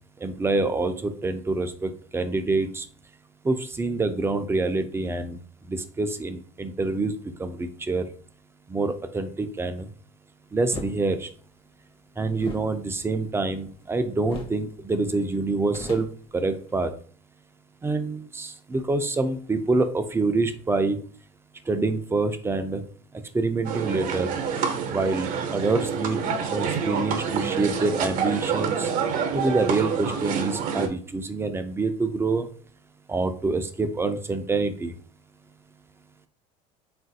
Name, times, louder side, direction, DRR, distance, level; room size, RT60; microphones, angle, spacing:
voice 1, 0.2-2.9 3.4-5.4 5.6-7.1 7.4-8.1 8.7-9.9 10.5-11.3 12.2-16.1 16.3-16.9 17.8-21.0 21.7-22.8 23.3-24.3 24.9-26.2 26.5-28.9 29.3-32.5 33.1-34.9, right 3 dB, 15° right, 8 dB, 0.4 m, -26 dB
sound 1, 10.7-11.0 12.3-13.9 14.3-14.7 15.0-15.1 15.4-16.9, left 2 dB, 35° left, 0.7 m, -40 dB
sound 2, 23.6-30.9, right 6 dB, 60° right, 0.7 m, -27 dB
3.7 x 2.4 x 2.6 m, 0.43 s
supercardioid pair, 95°, 17 cm